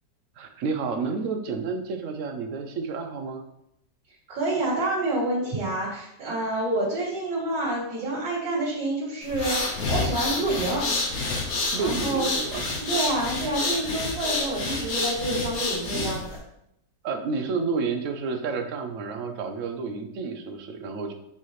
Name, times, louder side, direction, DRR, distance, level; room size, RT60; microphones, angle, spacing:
voice 1, 0.4-3.4 11.7-12.7 17.0-21.1, right 4 dB, 60° right, 5 dB, 0.9 m, -30 dB
voice 2, 4.3-10.9 11.5-12.3 12.8-16.4, right 2 dB, 85° right, -6 dB, 2.2 m, -28 dB
sound 1, 9.2-16.4, left 3 dB, 60° left, 1.5 m, -28 dB
7.3 x 4.1 x 3.2 m, 0.79 s
omnidirectional pair, 1.8 m